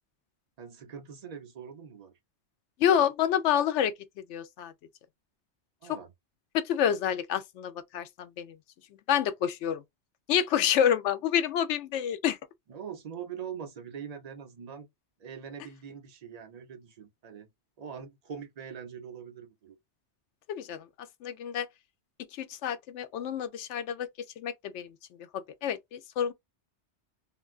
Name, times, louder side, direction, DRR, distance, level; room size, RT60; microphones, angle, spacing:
voice 1, 0.6-2.1 5.8-6.1 12.7-14.9 15.2-17.5 17.8-19.8, right 7 dB, 45° right, 0.6 m, -43 dB
voice 2, 2.8-3.9 4.3-4.7 6.5-8.6 9.1-9.8 10.3-12.4 20.5-20.9 21.2-21.7 22.3-24.1 24.4-24.9 25.6-26.3, left 9 dB, 85° left, 0.9 m, -28 dB
3.7 x 2.2 x 2.4 m
omnidirectional pair, 1.2 m